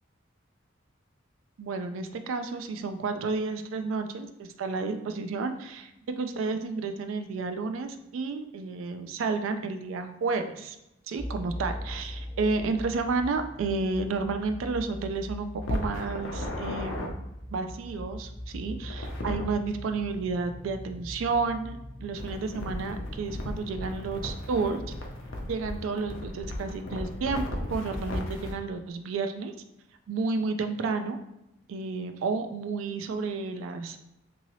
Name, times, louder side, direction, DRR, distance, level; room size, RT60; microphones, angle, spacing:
voice 1, 1.6-10.8 11.1-17.2 17.5-24.8 25.4-27.4 27.7-29.5 30.1-31.2 31.7-34.0, right 4 dB, 80° right, 7 dB, 0.3 m, -31 dB
sound 1, 11.2-25.6, left 1 dB, ahead, 0.6 m, -41 dB
sound 2, 15.6-17.1 18.8-19.5 22.2-28.5, left 1 dB, 80° left, 0.6 m, -35 dB
2.7 x 2.7 x 3.0 m, 0.88 s
head